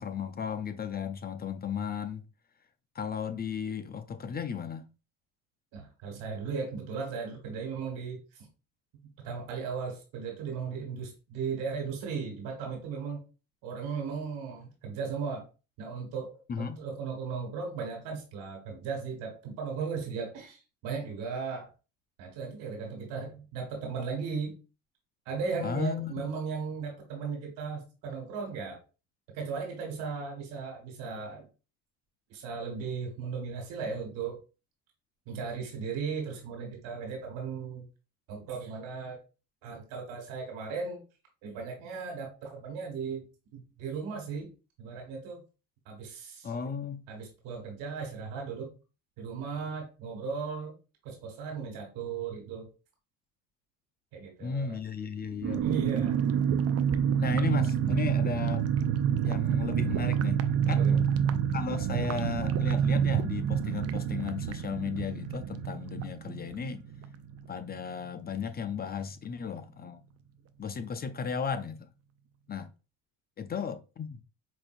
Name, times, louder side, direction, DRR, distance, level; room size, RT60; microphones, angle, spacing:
voice 1, 0.0-2.2 3.0-4.9 16.5-16.8 25.6-26.2 46.4-47.0 54.4-55.6 57.2-58.7 59.2-61.0 61.5-66.8 67.5-70.0 70.6-71.9 72.5-72.7 73.4-74.2, left 6 dB, 30° left, 0.4 m, -35 dB
voice 2, 5.7-8.5 9.2-13.2 13.6-15.4 15.8-21.7 22.2-24.6 25.2-28.8 29.3-31.5 32.3-34.4 35.2-37.9 38.3-39.2 39.6-41.0 41.4-43.2 43.5-44.5 44.8-45.4 45.8-46.5 47.1-48.7 49.2-50.7 51.0-52.7 54.1-54.8 55.6-56.2 60.6-61.0, right 5 dB, 85° right, 1.7 m, -36 dB
sound 1, 55.4-67.8 68.0-68.1 68.4-68.7, right 8 dB, 50° right, 0.5 m, -28 dB
5.1 x 2.6 x 2.5 m
supercardioid pair, 75°, 33 cm